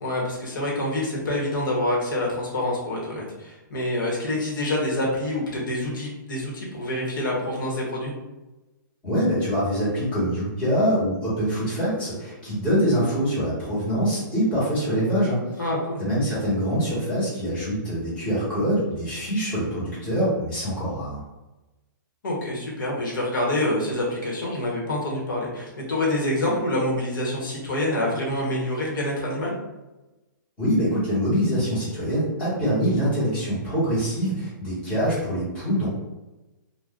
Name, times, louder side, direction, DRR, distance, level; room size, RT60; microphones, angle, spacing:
voice 1, 0.0-8.1 15.6-16.0 22.2-29.5, left 1 dB, 70° left, -3 dB, 1.0 m, -26 dB
voice 2, 9.0-15.4 16.0-21.2 30.6-35.9, equal, 10° left, -12 dB, 1.1 m, -24 dB
2.4 x 2.1 x 3.5 m, 1.0 s
hypercardioid pair, 175°, 11 cm